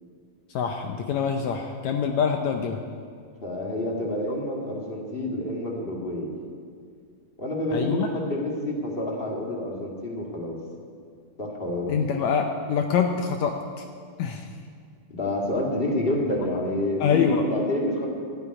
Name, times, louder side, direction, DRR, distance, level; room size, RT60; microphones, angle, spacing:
voice 1, 0.5-2.8 7.7-8.1 11.9-13.8 14.2-14.5 17.0-17.4, left 7 dB, 80° left, 4 dB, 1.6 m, -25 dB
voice 2, 3.4-6.3 7.4-10.6 11.4-11.9 15.1-18.1, left 1 dB, 30° left, -1 dB, 1.1 m, -28 dB
12.5 x 8.8 x 9.7 m, 2.1 s
omnidirectional pair, 4.0 m